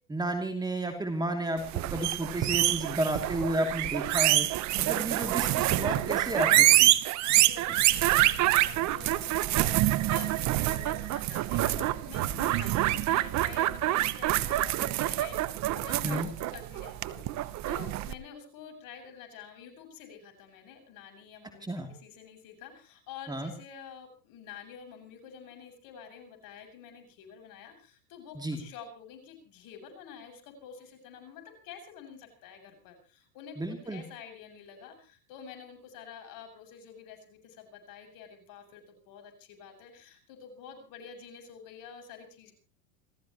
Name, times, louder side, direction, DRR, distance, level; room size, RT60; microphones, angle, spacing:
voice 1, 0.1-4.5 4.8-6.9 16.0-16.3 21.6-21.9 23.3-23.5 28.3-28.6 33.6-34.0, right 1 dB, 10° right, 4 dB, 2.9 m, -32 dB
sound 1, 1.6-18.1, right 15 dB, 40° right, 1.1 m, -26 dB
voice 2, 7.2-42.5, left 7 dB, 50° left, 6 dB, 7.5 m, -48 dB
29.5 x 14.5 x 3.1 m, 0.37 s
hypercardioid pair, 115°, 45 cm